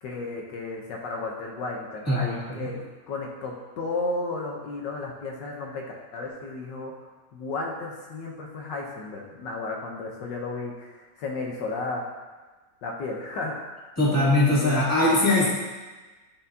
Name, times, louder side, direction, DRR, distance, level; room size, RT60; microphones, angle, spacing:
voice 1, 0.0-5.8 6.1-12.0 12.8-13.5 14.0-14.8 15.4-15.5, left 3 dB, 75° left, -1 dB, 1.5 m, -34 dB
voice 2, 2.1-2.7 14.0-15.5, left 2 dB, 10° left, -8 dB, 1.8 m, -21 dB
12.0 x 4.3 x 2.7 m, 1.2 s
omnidirectional pair, 2.0 m